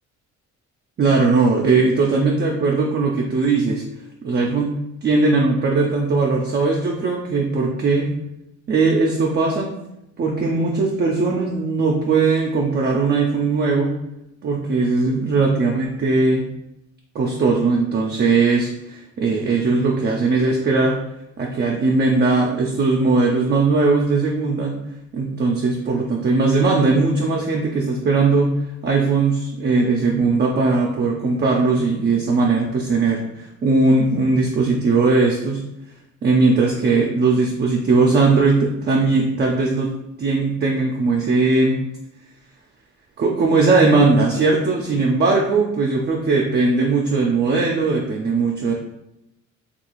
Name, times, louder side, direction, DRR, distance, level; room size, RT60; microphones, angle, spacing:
voice 1, 1.0-3.8 4.2-8.1 8.7-9.7 10.2-14.0 14.4-16.4 17.1-18.7 19.2-21.0 21.4-24.8 25.1-28.5 28.8-35.6 36.2-39.9 40.2-41.8 43.2-48.7, right 3 dB, 35° right, -1 dB, 0.4 m, -19 dB
2.8 x 2.4 x 3.0 m, 0.84 s
cardioid pair, 90°, 30 cm